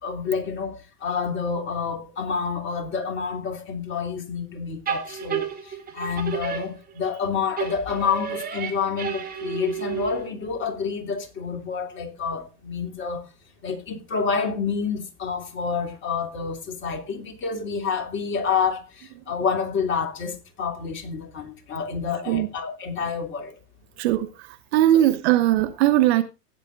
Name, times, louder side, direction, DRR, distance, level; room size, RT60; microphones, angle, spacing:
voice 1, 0.0-13.2 13.6-23.5 24.9-25.1, left 5 dB, 25° left, 3.0 m, -28 dB
sound 1, 4.9-7.2 7.6-10.4, right 8 dB, 20° right, 3.2 m, -31 dB
voice 2, 24.0-24.3 24.7-26.2, right 13 dB, 40° right, 1.1 m, -19 dB
15.5 x 9.6 x 3.7 m
figure-of-eight pair, 105°, 48 cm